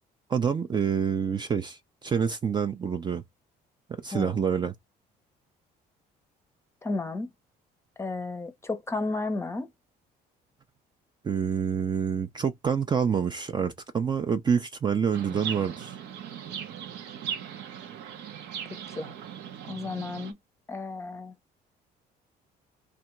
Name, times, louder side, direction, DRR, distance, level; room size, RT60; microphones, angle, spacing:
voice 1, 0.3-3.2 3.9-4.7 11.2-15.9, right 7 dB, 25° right, 0.4 m, -27 dB
voice 2, 6.8-7.3 8.0-9.7 19.0-19.1 19.7-20.3 20.7-21.3, left 3 dB, 15° left, 0.7 m, -32 dB
Chirp tweet, 15.1-20.3, right 8 dB, 80° right, 0.8 m, -38 dB
3.4 x 2.5 x 3.0 m
cardioid pair, 110°, 17 cm